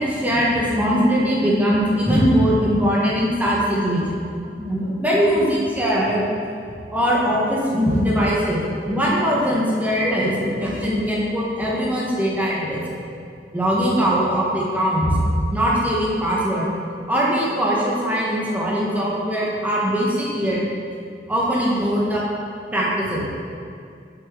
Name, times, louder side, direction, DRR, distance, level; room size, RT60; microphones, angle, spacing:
voice 1, 0.0-4.3 4.6-6.2 6.9-12.8 13.5-15.2 15.5-16.7 17.1-20.6 21.3-22.2 22.7-23.3, equal, 10° right, -5 dB, 1.2 m, -21 dB
6.5 x 4.4 x 4.8 m, 2.4 s
head